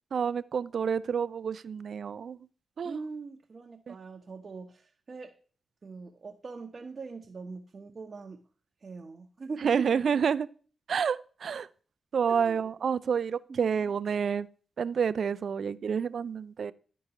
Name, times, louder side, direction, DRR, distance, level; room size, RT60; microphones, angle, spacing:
voice 1, 0.1-2.4 2.8-3.0 3.9-4.0 9.6-10.5 10.9-11.7 12.1-14.5 14.8-16.7, right 7 dB, 70° right, 0.3 m, -29 dB
voice 2, 2.8-5.3 5.8-8.4 8.8-10.1 12.3-12.6 13.5-13.8, right 4 dB, 55° right, 0.7 m, -42 dB
11.5 x 4.5 x 2.9 m
supercardioid pair, 40°, 0 cm